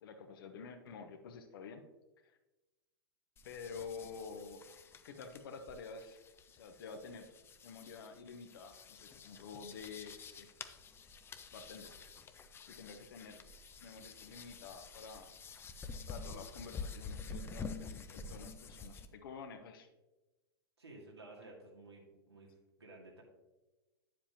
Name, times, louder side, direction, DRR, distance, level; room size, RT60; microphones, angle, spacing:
voice 1, 0.0-1.8 3.4-6.2 6.5-7.3 7.6-10.5 11.5-11.9 12.8-13.4 13.8-15.3 16.1-19.9, left 5 dB, 60° left, 7 dB, 1.0 m, -49 dB
sound 1, 3.4-19.1, left 4 dB, 20° left, 0.6 m, -49 dB
voice 2, 20.8-22.5 22.8-23.2, right 2 dB, 85° right, -2 dB, 2.3 m, -54 dB
9.9 x 7.4 x 2.9 m, 1.1 s
figure-of-eight pair, 100°, 13 cm